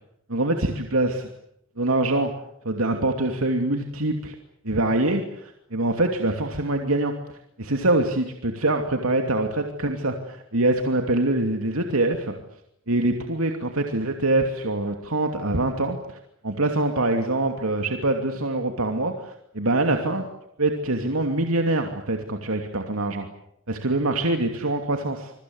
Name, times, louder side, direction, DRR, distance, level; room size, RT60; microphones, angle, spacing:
voice 1, 0.3-1.2 1.8-2.3 2.6-4.4 4.6-7.1 7.6-12.4 12.9-16.0 16.4-20.3 20.6-23.3 23.7-25.3, right 2 dB, 85° right, 4 dB, 2.8 m, -24 dB
27.0 x 23.5 x 8.0 m, 0.75 s
head